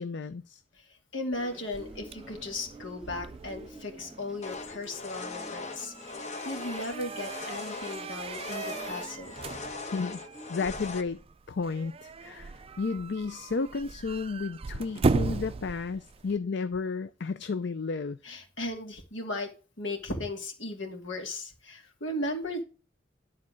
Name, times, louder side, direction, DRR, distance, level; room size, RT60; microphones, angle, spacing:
voice 1, 0.0-0.6 9.9-10.2 10.5-11.2 11.5-18.2, left 4 dB, 65° left, 0.5 m, -32 dB
voice 2, 0.7-9.3 18.2-19.5 19.8-22.6, left 1 dB, 80° left, 2.6 m, -36 dB
sound 1, 1.3-16.4, right 4 dB, 30° right, 0.3 m, -37 dB
sound 2, 1.4-10.7, right 2 dB, 5° right, 3.1 m, -50 dB
sound 3, 4.4-11.0, left 4 dB, 40° left, 1.0 m, -40 dB
11.0 x 4.2 x 6.3 m
head